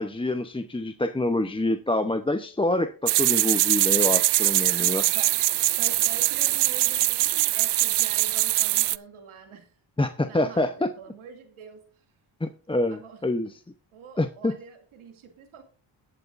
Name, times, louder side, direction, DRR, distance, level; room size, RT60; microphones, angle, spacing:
voice 1, 0.0-5.0 10.0-10.9 12.4-13.5 14.2-14.5, left 2 dB, 10° left, 9 dB, 0.7 m, -26 dB
sound 1, 3.1-9.0, right 16 dB, 60° right, 0.5 m, -22 dB
voice 2, 4.8-9.7 10.2-11.8 12.9-13.2 13.9-15.6, right 6 dB, 75° right, 5 dB, 2.4 m, -45 dB
21.5 x 8.0 x 2.5 m, 0.37 s
supercardioid pair, 60°, 50 cm